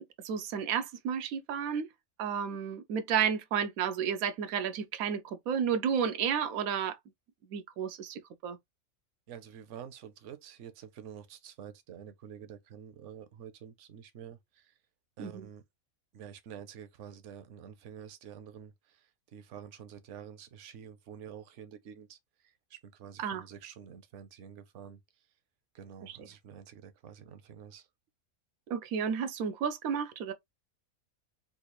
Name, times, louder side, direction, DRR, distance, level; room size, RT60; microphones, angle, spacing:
voice 1, 0.0-1.9 2.2-7.0 7.5-8.6 15.2-15.5 23.2-23.4 26.0-26.2 28.7-30.3, right 7 dB, 90° right, 1.1 m, -32 dB
voice 2, 9.3-14.7 15.2-15.6 16.1-22.2 22.4-25.0 25.7-27.9, right 8 dB, 65° right, 0.9 m, -48 dB
3.8 x 2.4 x 3.0 m
omnidirectional pair, 1.5 m